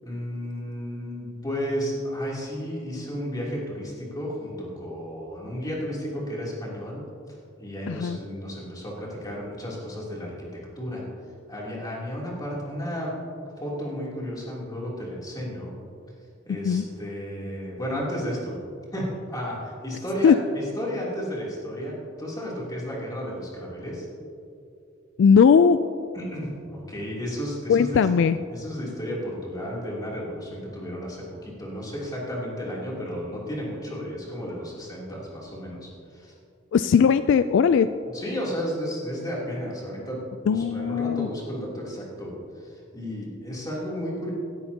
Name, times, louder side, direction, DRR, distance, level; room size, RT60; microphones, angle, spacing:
voice 1, 0.0-7.0 7.3-11.0 11.5-13.1 13.6-15.8 16.5-18.6 18.9-24.1 26.1-28.1 28.5-36.3 38.1-44.3, equal, 20° left, -5 dB, 3.0 m, -33 dB
voice 2, 7.9-8.2 16.5-16.8 20.2-20.3 25.2-25.8 27.7-28.4 36.7-37.9 40.5-41.3, left 6 dB, 60° left, 12 dB, 0.3 m, -18 dB
17.0 x 12.5 x 2.8 m, 2.5 s
head